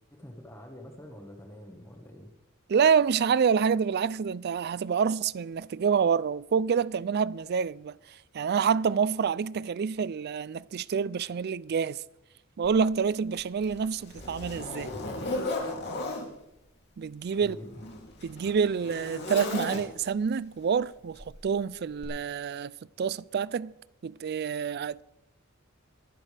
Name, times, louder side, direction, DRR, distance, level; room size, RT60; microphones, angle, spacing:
voice 1, 0.0-2.3 17.4-17.8, equal, 15° left, 1.4 m, -46 dB
voice 2, 2.7-7.9 8.3-12.0 12.6-14.9 17.0-17.6 18.2-22.7 23.0-23.7 24.0-25.0, right 6 dB, 50° right, 0.4 m, -27 dB
Zipper (clothing), 12.6-12.8 13.3-16.3 17.2-20.2 21.2-21.4 22.0-22.1, left 2 dB, 55° left, 2.8 m, -36 dB
22.5 x 11.5 x 3.4 m
head